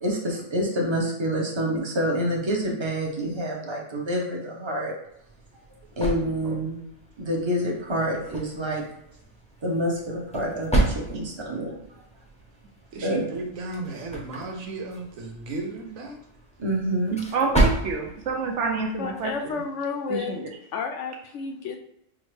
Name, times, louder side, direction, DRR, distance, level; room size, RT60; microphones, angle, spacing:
voice 1, 0.0-4.9 6.0-6.7 7.2-8.8 9.6-11.8 13.0-13.2 16.6-17.2, equal, 25° right, -2 dB, 0.8 m, -27 dB
sound 1, 5.1-19.6, right 2 dB, 5° left, 0.5 m, -32 dB
voice 2, 12.9-16.2, right 3 dB, 85° right, 1 dB, 1.2 m, -34 dB
voice 3, 17.3-19.5 20.1-20.5, right 4 dB, 65° right, 1 dB, 1.0 m, -28 dB
voice 4, 19.0-20.4 20.7-21.8, left 5 dB, 70° left, 4 dB, 0.9 m, -31 dB
6.1 x 2.1 x 3.2 m, 0.78 s
omnidirectional pair, 1.4 m